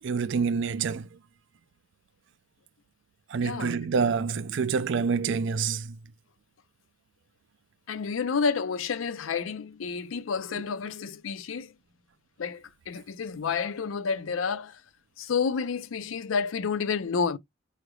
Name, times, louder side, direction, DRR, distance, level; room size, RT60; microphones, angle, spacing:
voice 1, 0.0-1.2 3.3-6.0 10.5-10.6, right 5 dB, 65° right, 0.4 m, -27 dB
voice 2, 3.4-3.8 7.9-11.7 12.4-14.8 15.2-17.4, left 5 dB, 75° left, 0.5 m, -30 dB
4.9 x 3.2 x 2.2 m
head